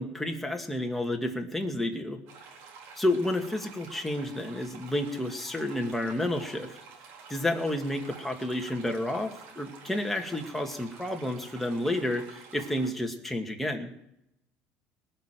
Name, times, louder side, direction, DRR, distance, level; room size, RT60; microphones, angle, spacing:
voice 1, 0.0-2.2 3.0-6.8 7.3-13.9, left 1 dB, 5° left, 3 dB, 2.3 m, -30 dB
sound 1, 2.3-12.9, right 5 dB, 75° right, 3.8 m, -49 dB
20.0 x 6.8 x 9.3 m, 0.78 s
supercardioid pair, 110°, 4 cm